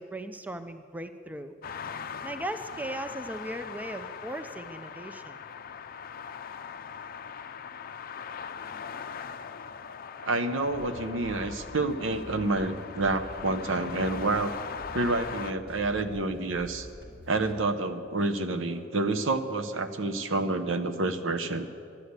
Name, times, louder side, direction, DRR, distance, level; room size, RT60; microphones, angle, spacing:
voice 1, 0.0-1.5 2.2-5.4, right 1 dB, 10° right, 9 dB, 0.5 m, -38 dB
sound 1, 1.6-15.5, left 6 dB, 50° left, 0.5 m, -41 dB
voice 2, 10.2-14.5 14.9-16.9 17.3-21.7, right 2 dB, 75° right, 8 dB, 0.8 m, -28 dB
sound 2, 10.6-17.5, left 1 dB, 55° right, 2.3 m, -47 dB
11.5 x 11.5 x 8.1 m, 2.4 s
head